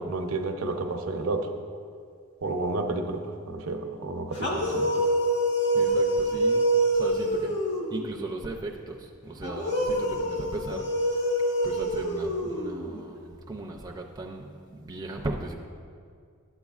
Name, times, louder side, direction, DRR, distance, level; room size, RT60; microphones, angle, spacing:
voice 1, 0.0-1.5 2.4-5.1, right 2 dB, 75° right, 4 dB, 0.7 m, -31 dB
sound 1, 4.3-8.1 9.4-13.0, right 1 dB, 55° left, 1.4 m, -26 dB
voice 2, 4.4-4.9 5.7-6.6 6.9-7.5 7.9-11.3 11.6-15.6, right 2 dB, 20° right, 0 dB, 0.4 m, -37 dB
12.0 x 8.0 x 2.4 m, 2.2 s
head